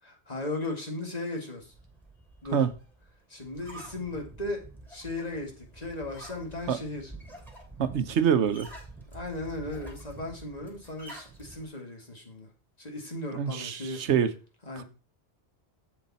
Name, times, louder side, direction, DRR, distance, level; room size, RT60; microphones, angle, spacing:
voice 1, 0.0-1.7 2.4-2.7 3.3-7.1 9.1-12.5 12.8-14.1 14.7-14.8, left 2 dB, 35° left, 2.2 m, -36 dB
sound 1, 1.6-11.7, right 2 dB, ahead, 3.0 m, -48 dB
voice 2, 7.8-8.7 13.3-14.3 14.8-14.9, right 8 dB, 85° right, 1.1 m, -25 dB
8.3 x 7.4 x 4.2 m
omnidirectional pair, 1.1 m